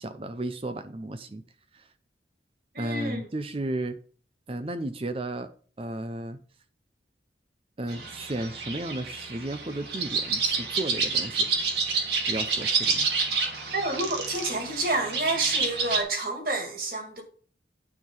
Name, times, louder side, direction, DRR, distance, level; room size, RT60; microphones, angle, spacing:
voice 1, 0.0-1.4 1.7-1.9 2.8-4.0 4.5-5.5 5.8-6.4 7.8-11.5 12.1-13.1, right 1 dB, 30° right, 0.6 m, -34 dB
voice 2, 2.7-3.3 13.7-17.2, right 2 dB, 50° right, 2.2 m, -29 dB
sound 1, 7.9-16.0, right 4 dB, 70° right, 2.0 m, -29 dB
9.5 x 4.8 x 5.4 m
head